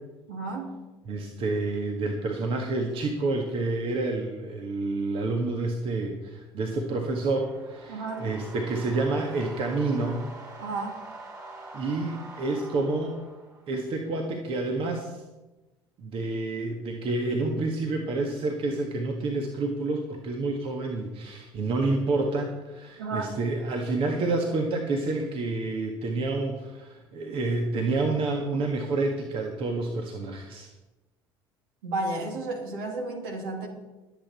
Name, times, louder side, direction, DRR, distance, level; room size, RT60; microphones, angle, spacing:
voice 1, 0.3-0.7 7.9-8.3 10.6-11.0 23.0-23.3 31.8-33.7, right 2 dB, 70° right, 2 dB, 2.8 m, -32 dB
voice 2, 1.1-10.3 11.7-13.2 13.7-15.2 16.0-30.7, right 3 dB, 50° right, 3 dB, 1.8 m, -29 dB
sound 1, 6.7-13.8, right 2 dB, 30° right, 4.5 m, -45 dB
22.5 x 8.6 x 4.4 m, 1.1 s
figure-of-eight pair, 60°, 12 cm